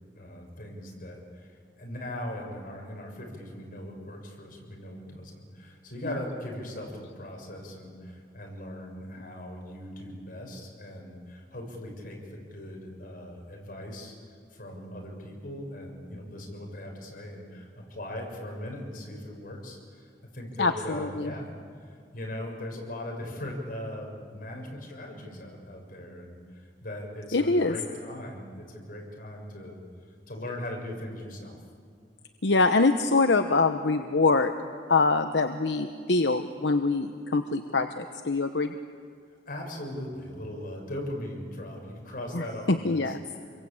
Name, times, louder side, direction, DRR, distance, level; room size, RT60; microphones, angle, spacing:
voice 1, 0.2-14.1 14.5-29.8 30.3-31.5 39.5-43.1, left 1 dB, 50° left, 1 dB, 6.6 m, -39 dB
voice 2, 20.6-21.3 27.3-27.7 32.4-34.5 34.9-38.7 42.3-43.2, left 3 dB, 75° left, 7 dB, 1.0 m, -24 dB
28.0 x 23.0 x 8.8 m, 2.1 s
head